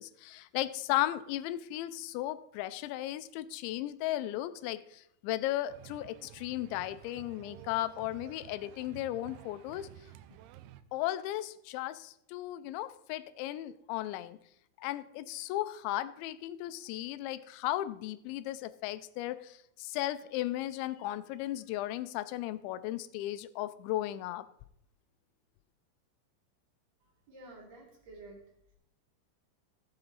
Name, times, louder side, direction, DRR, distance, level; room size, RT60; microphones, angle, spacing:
voice 1, 0.0-9.9 10.9-14.4 14.8-24.5, left 14 dB, 85° left, 14 dB, 2.8 m, -35 dB
sound 1, 5.7-10.8, right 13 dB, 85° right, 3.0 m, -52 dB
voice 2, 27.0-28.4, right 2 dB, 40° right, -1 dB, 3.5 m, -51 dB
15.5 x 7.9 x 4.0 m, 0.74 s
omnidirectional pair, 5.4 m